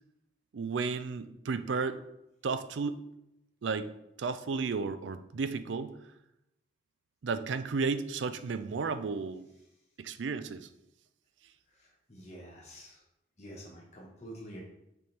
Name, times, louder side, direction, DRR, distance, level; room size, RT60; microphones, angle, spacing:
voice 1, 0.5-2.0 2.4-3.0 3.6-3.9 4.2-5.9 7.2-9.5 10.0-10.7, right 4 dB, 80° right, 11 dB, 0.4 m, -33 dB
voice 2, 11.7-13.0 13.4-14.6, equal, 35° left, -3 dB, 1.3 m, -48 dB
6.5 x 4.4 x 3.3 m, 0.85 s
head